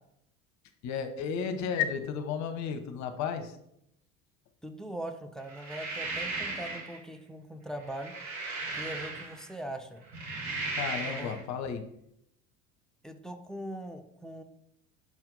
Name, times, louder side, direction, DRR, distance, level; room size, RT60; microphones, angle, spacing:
voice 1, 0.8-3.6 10.7-11.8, left 7 dB, 45° left, 8 dB, 0.8 m, -33 dB
voice 2, 4.6-8.2 8.7-10.0 11.1-11.4 13.0-14.4, right 1 dB, ahead, 6 dB, 0.5 m, -41 dB
sound 1, 5.5-7.0 7.8-9.5 10.0-11.4, right 3 dB, 45° right, 1.8 m, -36 dB
5.9 x 4.3 x 3.9 m, 0.76 s
figure-of-eight pair, 70°, 40 cm